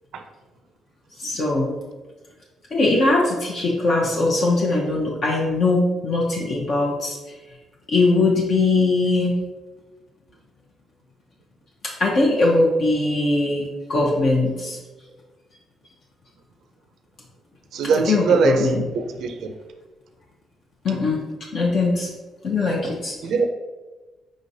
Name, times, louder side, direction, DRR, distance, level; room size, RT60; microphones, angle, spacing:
voice 1, 1.2-1.7 2.7-7.2 7.9-9.4 11.8-14.8 18.1-18.8 20.8-21.2 21.5-22.1 22.4-23.1, left 2 dB, 55° left, -3 dB, 0.8 m, -20 dB
voice 2, 17.7-19.5 23.2-23.5, right 5 dB, 75° right, 6 dB, 0.4 m, -22 dB
5.0 x 3.1 x 2.7 m, 1.2 s
cardioid pair, 90°, 0 cm